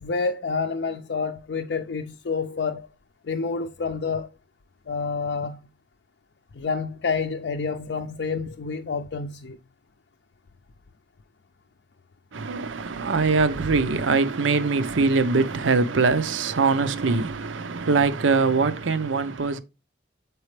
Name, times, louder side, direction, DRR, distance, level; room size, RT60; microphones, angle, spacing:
voice 1, 0.0-2.9 3.2-4.3 4.9-5.6 6.5-9.6, left 4 dB, 65° left, 0.5 m, -28 dB
voice 2, 12.3-19.6, right 4 dB, 90° right, 0.7 m, -22 dB
7.5 x 4.6 x 3.3 m
head